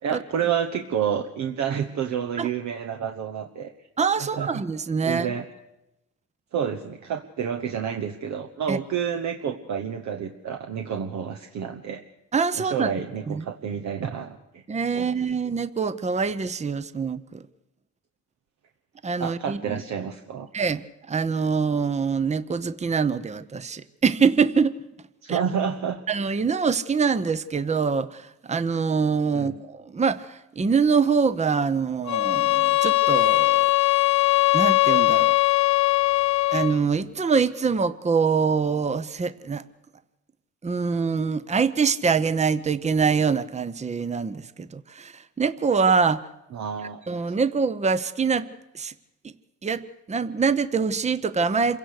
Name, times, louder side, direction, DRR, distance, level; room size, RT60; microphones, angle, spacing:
voice 1, 0.0-3.7 4.2-4.6 5.0-5.5 6.5-12.0 12.6-14.6 14.9-15.2 19.2-20.5 25.2-26.0 29.3-29.6 46.5-47.0, right 8 dB, 65° right, 5 dB, 1.2 m, -29 dB
voice 2, 4.0-5.3 8.7-8.8 12.3-12.9 13.3-13.4 14.7-17.4 19.0-19.8 20.5-24.8 25.3-25.4 26.1-33.7 34.5-35.4 36.5-39.6 40.6-46.2 47.1-48.5 48.7-48.9 49.6-51.8, right 5 dB, 20° right, 14 dB, 0.8 m, -24 dB
sound 1, 32.1-36.8, left 19 dB, 70° left, 0.8 m, -20 dB
27.0 x 17.0 x 6.6 m, 0.91 s
cardioid pair, 90°, 30 cm